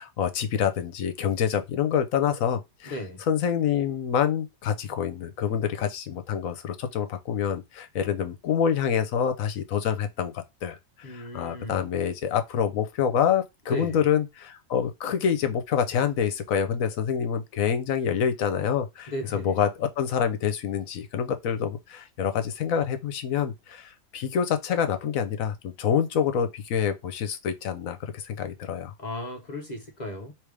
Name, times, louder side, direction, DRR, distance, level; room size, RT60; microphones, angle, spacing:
voice 1, 0.0-2.9 3.3-10.8 11.1-28.9, left 8 dB, 75° left, 1.1 m, -27 dB
voice 2, 2.8-3.2 11.0-11.8 13.7-14.0 19.1-19.6 29.0-30.3, left 1 dB, 40° left, 0.8 m, -35 dB
3.4 x 3.1 x 4.8 m
omnidirectional pair, 1.5 m